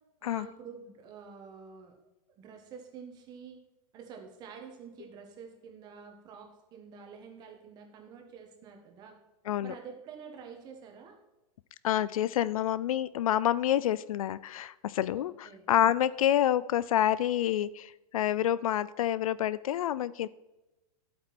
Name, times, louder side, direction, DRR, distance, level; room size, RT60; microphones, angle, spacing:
voice 1, 0.2-2.0 2.4-3.6 3.9-9.2 9.6-11.2 15.1-15.7, right 6 dB, 20° right, 3 dB, 1.6 m, -48 dB
voice 2, 11.8-20.3, left 11 dB, 65° left, 18 dB, 0.4 m, -28 dB
11.5 x 8.6 x 4.3 m, 0.99 s
hypercardioid pair, 165°, 20 cm